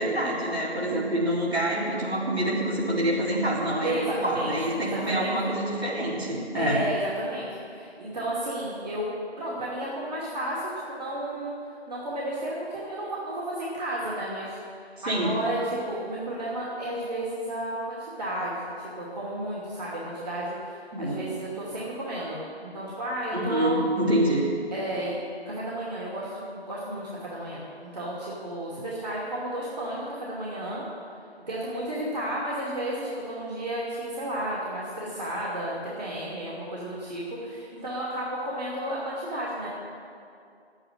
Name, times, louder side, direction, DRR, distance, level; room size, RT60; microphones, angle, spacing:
voice 1, 0.0-6.8 15.0-15.3 20.9-21.2 23.3-24.4, right 1 dB, 70° right, -5 dB, 4.4 m, -26 dB
voice 2, 3.8-5.3 6.5-9.1 9.4-14.6 14.9-23.8 24.7-25.2 25.4-30.8 31.5-39.7, right 1 dB, 40° right, -7 dB, 2.6 m, -32 dB
10.5 x 9.0 x 10.0 m, 2.4 s
figure-of-eight pair, 160°, 33 cm